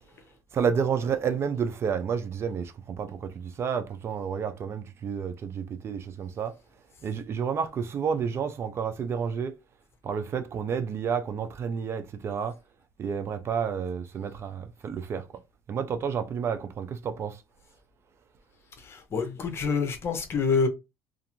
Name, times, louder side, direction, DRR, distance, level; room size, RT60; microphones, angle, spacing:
voice 1, 0.5-6.5 7.0-9.5 10.0-12.6 13.0-15.3 15.7-17.4, right 7 dB, 40° right, 0.5 m, -30 dB
voice 2, 18.8-20.7, left 5 dB, 40° left, 0.8 m, -27 dB
2.5 x 2.5 x 2.9 m
cardioid pair, 105°, 6 cm